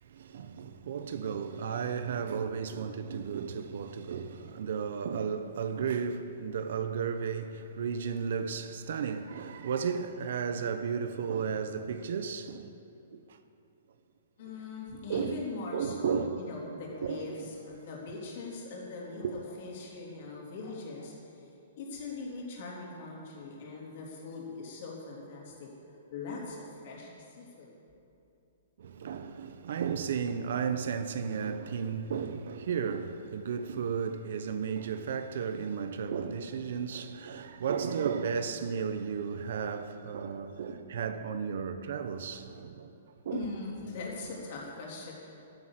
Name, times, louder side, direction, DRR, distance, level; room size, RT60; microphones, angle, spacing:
voice 1, 0.0-12.8 13.1-13.4 15.1-15.4 15.7-16.4 16.7-17.5 19.2-19.4 28.8-42.9 43.2-43.5, right 6 dB, 60° right, 0.8 m, -34 dB
voice 2, 14.4-21.1 21.8-25.7 26.1-27.7 43.3-45.1, left 3 dB, 45° left, 3.4 m, -41 dB
11.5 x 11.0 x 7.6 m
hypercardioid pair, 170°, 0 cm